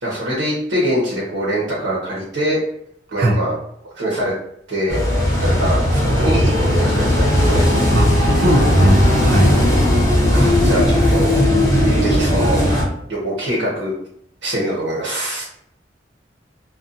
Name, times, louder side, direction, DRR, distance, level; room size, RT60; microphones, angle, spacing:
voice 1, 0.0-2.6 3.1-3.6 3.9-4.3 4.7-5.0 5.4-7.6 8.0-8.4 10.3-11.3 12.0-12.6 13.1-13.9 14.4-15.4, right 1 dB, 90° right, -6 dB, 0.8 m, -23 dB
sound 1, 4.9-12.8, left 1 dB, 20° left, 0.9 m, -16 dB
voice 2, 8.4-9.5, equal, 55° right, 1 dB, 0.5 m, -17 dB
2.6 x 2.3 x 2.5 m, 0.73 s
head